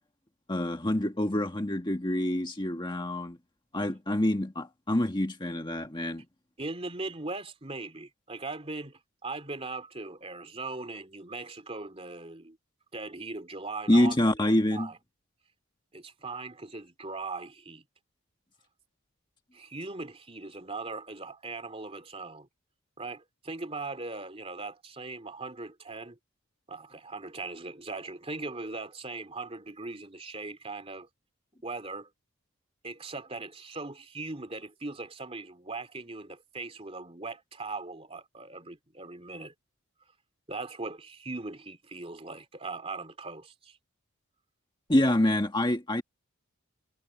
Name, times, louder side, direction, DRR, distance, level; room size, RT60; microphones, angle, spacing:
voice 1, 0.5-3.4 3.7-6.2 13.9-14.9 44.9-46.0, left 1 dB, 20° left, 1.5 m, -26 dB
voice 2, 6.6-12.6 12.9-14.2 14.7-15.0 15.9-17.8 19.5-22.5 23.0-26.2 26.7-31.1 31.6-32.1 32.8-39.5 40.5-43.8, right 3 dB, 25° right, 3.0 m, -39 dB
head